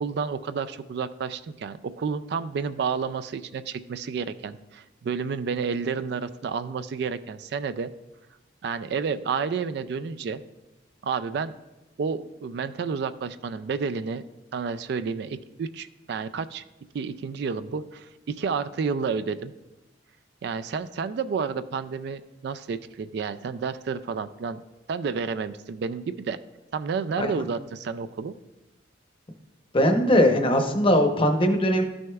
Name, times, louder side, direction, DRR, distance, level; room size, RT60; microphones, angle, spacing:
voice 1, 0.0-7.9 8.6-10.4 11.0-11.5 12.0-14.2 14.5-16.6 16.9-19.5 20.4-24.6 24.9-26.4 26.7-28.3, right 5 dB, 60° right, 12 dB, 0.3 m, -30 dB
voice 2, 29.7-31.8, equal, 30° left, 5 dB, 0.8 m, -20 dB
13.0 x 6.2 x 2.3 m, 1.0 s
head